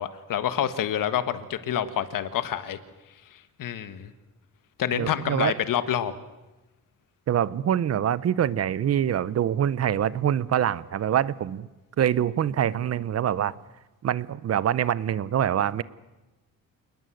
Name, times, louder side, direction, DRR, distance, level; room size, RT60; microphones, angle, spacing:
voice 1, 0.0-2.8 3.6-4.1 4.8-6.1, left 10 dB, 65° left, 11 dB, 1.6 m, -27 dB
voice 2, 4.9-5.6 7.3-11.7 12.0-13.5 14.0-15.8, right 10 dB, 45° right, 19 dB, 0.8 m, -25 dB
28.0 x 20.0 x 7.8 m, 1.1 s
cardioid pair, 165°, 35 cm